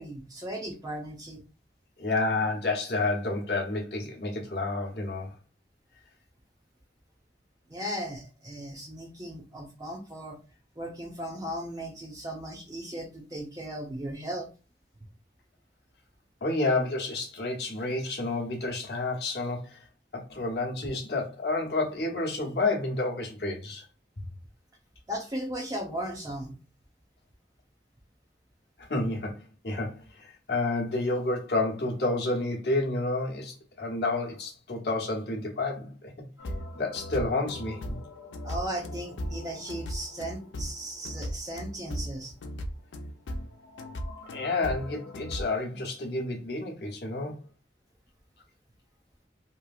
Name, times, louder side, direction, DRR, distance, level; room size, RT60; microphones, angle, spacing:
voice 1, 0.0-1.4 7.7-10.4 10.8-14.5 25.1-26.5 38.4-42.3, right 1 dB, 20° right, 0.6 m, -36 dB
voice 2, 2.0-5.4 16.4-19.8 20.1-23.8 28.8-36.1 36.7-38.0 44.3-47.4, left 2 dB, 60° left, 0.9 m, -30 dB
sound 1, 36.4-45.4, equal, 90° left, 0.5 m, -37 dB
3.0 x 2.6 x 2.3 m
head